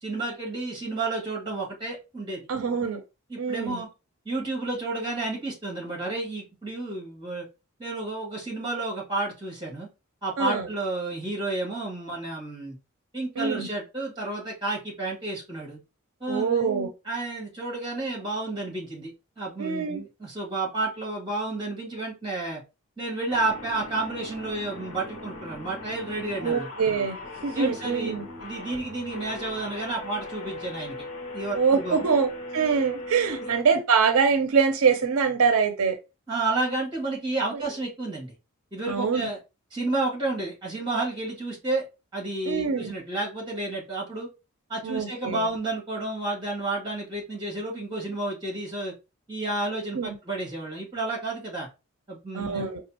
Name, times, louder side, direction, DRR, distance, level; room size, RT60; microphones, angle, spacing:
voice 1, 0.0-2.5 3.3-3.9 4.3-7.5 7.8-9.9 10.2-12.7 13.1-15.8 16.2-16.7 17.1-19.1 19.4-22.6 23.0-26.7 27.5-28.1 28.4-30.9 31.3-32.1 33.4-33.5 36.3-38.3 38.7-39.4 39.7-41.9 42.1-44.3 44.7-48.9 49.3-51.7 52.1-52.7, right 2 dB, 20° right, 1.9 m, -31 dB
voice 2, 2.5-3.0 3.4-3.8 10.4-10.7 13.4-13.7 16.3-16.9 19.6-20.0 26.4-28.3 31.5-36.0 37.5-37.6 38.9-39.2 42.4-42.9 44.8-45.5 50.0-50.2 52.3-52.8, right 5 dB, 85° right, 0.5 m, -24 dB
sound 1, 23.3-33.6, left 2 dB, 75° left, 0.9 m, -39 dB
5.1 x 2.4 x 2.8 m
head